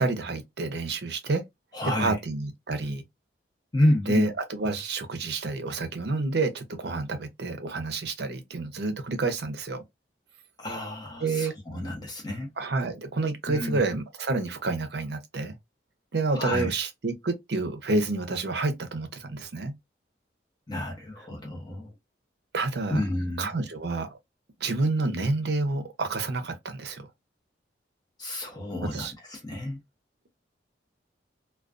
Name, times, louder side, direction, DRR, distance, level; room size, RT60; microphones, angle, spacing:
voice 1, 0.0-1.4 1.8-3.0 4.1-9.8 11.2-11.5 12.6-15.6 16.1-19.7 22.5-23.0 23.4-24.2 24.6-27.1 28.9-29.1, right 3 dB, 60° right, 0.6 m, -29 dB
voice 2, 1.7-2.1 3.7-4.3 10.6-12.5 13.5-13.8 16.4-16.7 20.7-21.9 22.9-23.5 28.2-29.8, left 1 dB, 20° left, 0.7 m, -29 dB
2.3 x 2.2 x 2.4 m
head